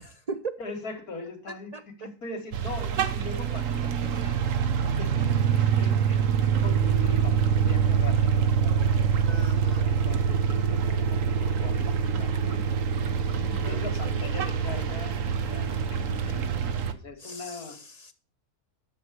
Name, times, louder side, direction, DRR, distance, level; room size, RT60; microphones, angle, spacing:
voice 1, 0.0-0.5 1.5-2.1 9.3-9.9 13.6-14.3 15.7-15.8 17.2-18.1, right 4 dB, 75° right, 0.3 m, -39 dB
voice 2, 0.6-4.5 5.0-6.2 6.6-9.1 9.9-12.6 13.4-15.1 15.4-17.8, left 3 dB, 70° left, 2.6 m, -41 dB
sound 1, 2.5-16.9, right 7 dB, 60° right, 1.2 m, -25 dB
11.0 x 6.8 x 6.6 m
omnidirectional pair, 1.6 m